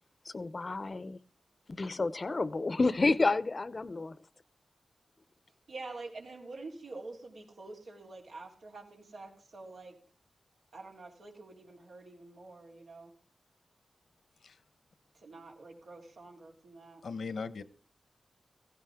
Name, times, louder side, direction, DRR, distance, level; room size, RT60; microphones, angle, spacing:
voice 1, 0.2-1.2 1.7-4.2, left 3 dB, 40° left, 17 dB, 0.7 m, -30 dB
voice 2, 5.7-10.0 10.7-13.1 15.2-17.0, right 3 dB, 90° right, -1 dB, 3.8 m, -47 dB
voice 3, 17.0-17.6, left 4 dB, 75° left, 15 dB, 1.0 m, -38 dB
17.0 x 15.5 x 3.6 m, 0.37 s
wide cardioid pair, 95°, 0 cm